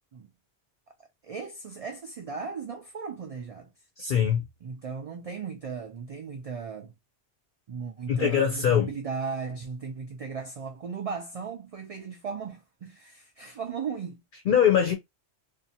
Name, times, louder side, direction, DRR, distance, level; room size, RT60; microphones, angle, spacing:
voice 1, 1.2-3.7 4.6-6.9 7.7-14.2, right 5 dB, 70° right, 0.3 m, -36 dB
voice 2, 4.0-4.5 8.1-8.9 14.5-15.0, left 8 dB, 60° left, 0.6 m, -22 dB
2.6 x 2.2 x 2.7 m
omnidirectional pair, 1.1 m